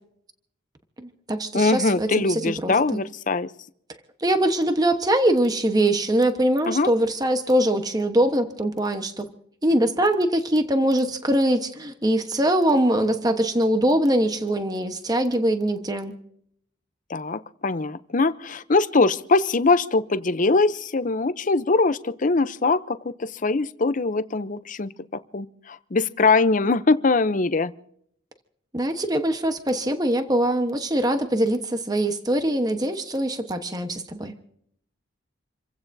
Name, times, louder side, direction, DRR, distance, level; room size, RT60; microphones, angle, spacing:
voice 1, 1.0-3.0 4.2-9.3 9.6-16.1 28.7-34.3, right 1 dB, 20° right, 7 dB, 1.1 m, -22 dB
voice 2, 1.5-3.5 6.7-6.9 17.1-27.7, left 3 dB, 40° left, 14 dB, 0.6 m, -22 dB
28.0 x 16.0 x 2.7 m, 0.69 s
head